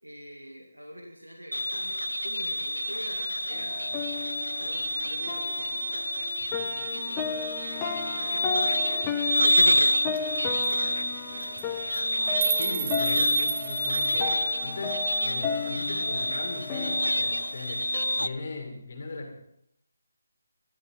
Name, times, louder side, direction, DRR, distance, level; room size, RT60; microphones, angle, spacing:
voice 1, 0.0-5.9 6.5-11.7, equal, 85° right, 1 dB, 2.3 m, -46 dB
sound 1, 1.5-18.3, equal, 85° left, 0.6 m, -28 dB
sound 2, 3.5-18.4, left 6 dB, 15° left, 1.0 m, -35 dB
sound 3, 9.5-9.6 9.9-10.0 10.2-10.4 10.6-10.8 11.4-11.6 11.9-14.3, right 9 dB, 25° right, 0.7 m, -33 dB
voice 2, 12.5-17.9 18.2-19.4, left 3 dB, 45° left, 4 dB, 2.5 m, -38 dB
18.5 x 12.0 x 3.9 m, 0.72 s
figure-of-eight pair, 150°, 0 cm